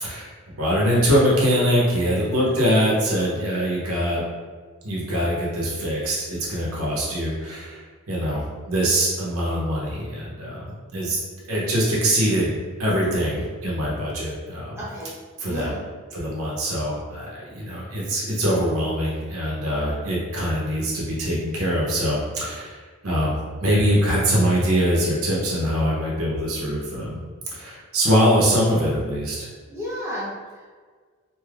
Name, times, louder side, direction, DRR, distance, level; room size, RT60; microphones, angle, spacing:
voice 1, 0.6-4.2 4.8-7.8 8.1-11.2 11.5-14.8 15.4-15.7 16.1-27.2 27.5-29.4, equal, 85° right, -5 dB, 0.8 m, -23 dB
voice 2, 2.3-2.6 14.8-15.2 15.4-15.8 29.7-30.7, equal, 10° right, -8 dB, 0.8 m, -33 dB
3.3 x 2.7 x 2.4 m, 1.5 s
head